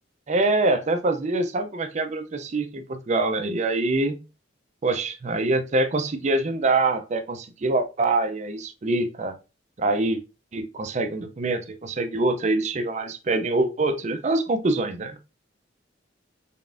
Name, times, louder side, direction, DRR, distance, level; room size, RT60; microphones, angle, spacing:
voice 1, 0.3-4.2 4.8-9.4 9.8-10.2 10.5-15.2, right 2 dB, 40° right, 8 dB, 0.5 m, -24 dB
3.9 x 3.6 x 2.5 m, 0.29 s
head